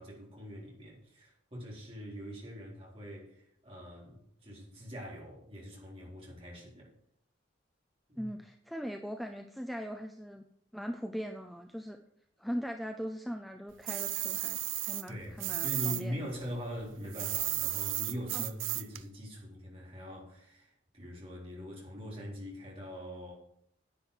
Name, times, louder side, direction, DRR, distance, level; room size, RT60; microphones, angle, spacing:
voice 1, 0.0-6.9 8.1-8.3 15.1-23.3, equal, 30° right, -4 dB, 4.1 m, -43 dB
voice 2, 8.2-10.4 10.7-12.0 12.4-16.2 18.3-18.4, equal, ahead, 4 dB, 0.5 m, -40 dB
sound 1, 13.9-16.0 16.3-19.0, right 16 dB, 80° right, 0.5 m, -34 dB
10.5 x 9.1 x 5.0 m, 0.72 s
head